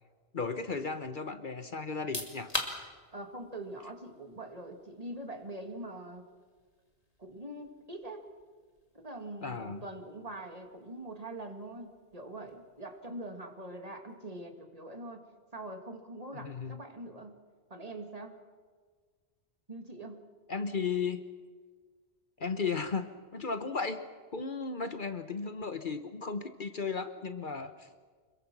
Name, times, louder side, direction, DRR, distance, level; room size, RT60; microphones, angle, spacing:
voice 1, 0.3-2.5 9.4-9.8 16.3-16.8 20.5-21.2 22.4-24.0 24.3-27.9, left 5 dB, 50° left, 9 dB, 1.2 m, -35 dB
sound 1, 1.9-14.5, left 2 dB, 35° left, 2.7 m, -46 dB
voice 2, 3.1-6.2 7.2-8.2 8.9-15.3 15.5-17.3 17.7-18.4 19.7-20.2, right 1 dB, 35° right, 4 dB, 2.3 m, -43 dB
26.5 x 22.0 x 6.1 m, 1.5 s
omnidirectional pair, 1.1 m